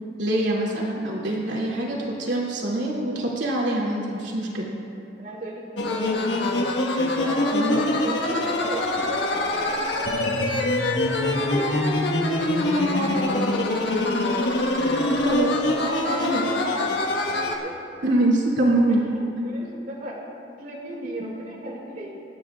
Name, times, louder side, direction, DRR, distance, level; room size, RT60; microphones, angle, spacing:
voice 1, 0.2-4.7 7.5-7.8 15.2-15.5 16.2-16.4 18.0-19.0 21.2-21.4, right 1 dB, 80° right, -4 dB, 2.6 m, -24 dB
voice 2, 5.2-6.6 7.1-11.7 12.2-12.3 12.6-14.4 15.7-17.0 17.3-17.7 18.9-22.1, right 1 dB, 50° right, -4 dB, 2.2 m, -36 dB
sound 1, 5.8-17.6, left 2 dB, 80° left, 1.5 m, -24 dB
29.0 x 10.0 x 2.4 m, 2.8 s
head